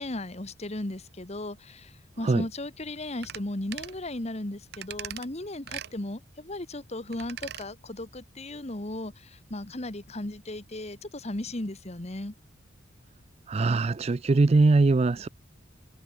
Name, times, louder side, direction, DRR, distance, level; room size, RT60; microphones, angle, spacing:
voice 1, 0.0-12.3, left 1 dB, 35° left, 1.5 m, -36 dB
sound 1, 3.2-3.4 3.7-4.0 4.7-5.3 5.7-5.9 7.1-7.7 8.0-8.1, right 10 dB, 55° right, 0.8 m, -39 dB
voice 2, 13.5-15.3, right 3 dB, 30° right, 0.4 m, -21 dB
head